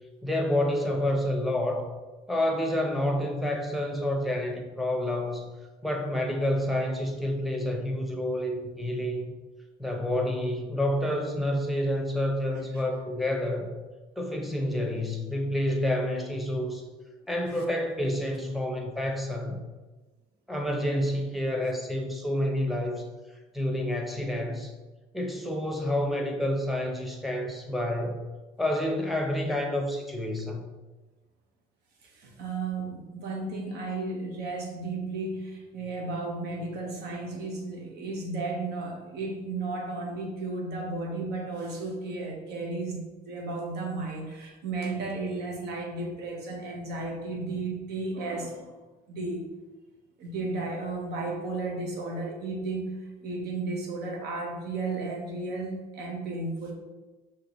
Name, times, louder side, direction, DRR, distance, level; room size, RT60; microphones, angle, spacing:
voice 1, 0.2-1.9 2.3-5.5 5.8-9.3 9.8-13.7 14.2-16.8 17.3-19.6 20.5-23.1 23.5-24.7 25.1-28.3 28.6-30.7, left 1 dB, ahead, 2 dB, 0.7 m, -29 dB
voice 2, 32.0-48.7 49.1-49.5 50.2-56.7, right 3 dB, 75° right, 1 dB, 1.1 m, -34 dB
5.6 x 3.0 x 3.0 m, 1.2 s
cardioid pair, 110°, 17 cm